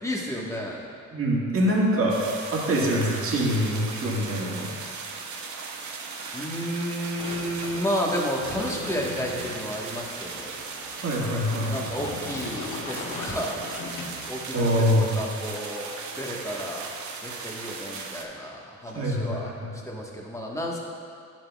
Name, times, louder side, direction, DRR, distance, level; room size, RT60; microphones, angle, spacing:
voice 1, 0.0-0.9 6.3-10.6 11.7-13.6 14.3-15.9 16.2-16.9 17.2-19.5 19.8-20.8, equal, 10° left, -2 dB, 1.3 m, -32 dB
voice 2, 1.1-2.2 2.5-4.7 11.0-11.8 14.5-15.1 18.9-19.7, equal, 45° right, -4 dB, 1.8 m, -24 dB
sound 1, 2.1-18.2, right 4 dB, 70° right, 0.8 m, -37 dB
Sliding door, 7.2-14.7, left 4 dB, 80° left, 1.0 m, -40 dB
11.0 x 7.5 x 2.4 m, 2.3 s
cardioid pair, 90°, 30 cm